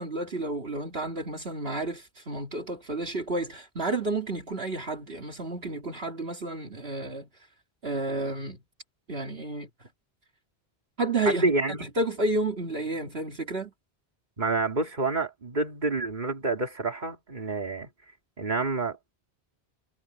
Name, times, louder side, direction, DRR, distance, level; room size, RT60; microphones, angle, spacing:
voice 1, 0.0-7.3 7.8-8.6 9.1-9.9 11.0-11.5 11.8-13.7, right 2 dB, 65° right, 2.7 m, -31 dB
voice 2, 11.2-11.9 14.4-17.9 18.4-19.1, right 3 dB, 45° right, 2.9 m, -28 dB
omnidirectional pair, 1.1 m